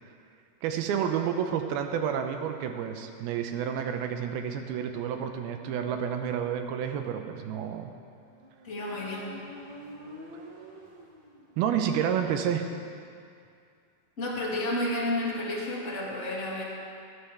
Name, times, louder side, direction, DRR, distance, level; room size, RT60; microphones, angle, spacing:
voice 1, 0.6-7.9 11.6-12.7, right 8 dB, 80° right, 6 dB, 2.5 m, -30 dB
Motorcycle, 8.2-11.8, equal, 50° right, 1.4 m, -47 dB
voice 2, 8.6-9.4 14.2-16.6, left 1 dB, 25° left, -6 dB, 2.0 m, -31 dB
19.0 x 11.0 x 3.4 m, 2.3 s
omnidirectional pair, 4.6 m